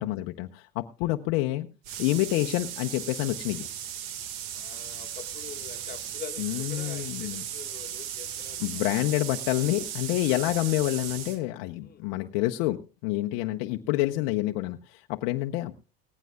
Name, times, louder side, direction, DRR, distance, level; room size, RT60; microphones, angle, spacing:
voice 1, 0.0-1.7 2.0-3.7 6.4-7.4 8.6-15.7, left 17 dB, 70° left, 4 dB, 0.8 m, -28 dB
sound 1, 1.8-11.4, right 10 dB, 65° right, 1.8 m, -37 dB
voice 2, 4.5-8.8 11.8-12.0, left 8 dB, 35° left, 5 dB, 1.7 m, -45 dB
18.5 x 15.0 x 2.3 m, 0.34 s
supercardioid pair, 90°, 29 cm